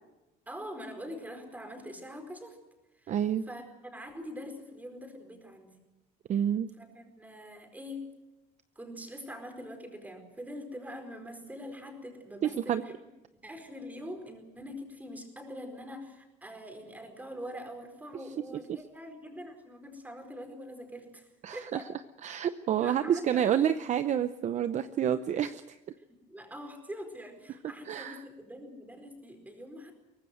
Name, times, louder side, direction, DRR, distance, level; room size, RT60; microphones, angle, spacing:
voice 1, 0.5-2.6 3.0-3.2 3.5-5.7 6.8-8.1 8.7-12.9 13.4-21.9 22.8-23.7 26.1-29.9, equal, 10° right, 5 dB, 4.6 m, -44 dB
voice 2, 3.1-3.4 6.3-6.7 12.7-12.8 18.7-18.8 21.4-21.8 22.2-25.8 27.9-28.2, right 9 dB, 40° right, 11 dB, 0.7 m, -29 dB
23.5 x 18.5 x 7.9 m, 1.0 s
cardioid pair, 145°, 18 cm